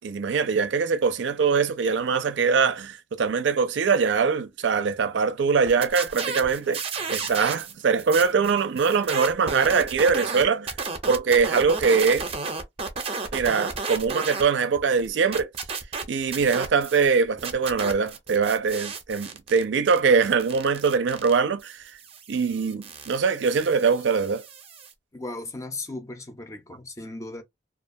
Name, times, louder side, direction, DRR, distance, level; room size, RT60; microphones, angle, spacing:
voice 1, 0.0-6.8 7.1-10.7 11.1-12.3 13.3-15.5 16.1-21.8 22.3-24.4, right 5 dB, 85° right, 0.4 m, -22 dB
sound 1, 5.7-7.7 8.0-14.4 14.8-17.1 17.4-24.9, right 4 dB, 35° right, 0.5 m, -33 dB
voice 2, 25.1-27.4, left 2 dB, 15° left, 0.5 m, -36 dB
2.4 x 2.2 x 2.5 m
head